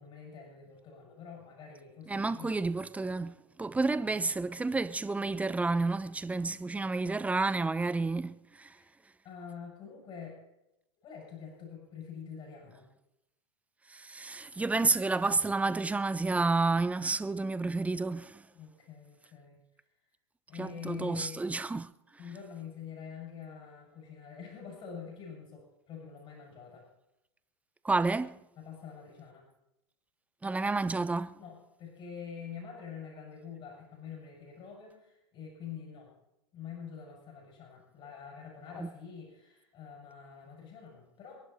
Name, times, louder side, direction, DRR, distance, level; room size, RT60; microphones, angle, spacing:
voice 1, 0.0-2.5 8.7-8.9 9.2-10.4 11.0-12.9 18.6-19.6 20.5-21.4 22.2-26.8 28.6-29.5 31.4-36.1 36.5-41.4, left 7 dB, 40° left, 7.1 m, -46 dB
voice 2, 2.1-8.8 13.9-18.4 20.6-21.9 27.8-28.4 30.4-31.4 38.8-38.9, right 3 dB, 10° right, 0.8 m, -30 dB
27.5 x 11.0 x 4.3 m
figure-of-eight pair, 90°, 14 cm